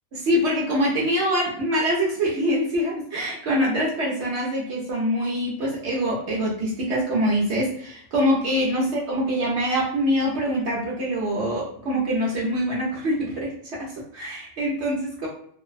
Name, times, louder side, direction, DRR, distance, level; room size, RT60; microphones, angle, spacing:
voice 1, 0.2-15.3, equal, 60° right, -4 dB, 0.8 m, -24 dB
2.6 x 2.0 x 2.3 m, 0.65 s
omnidirectional pair, 1.5 m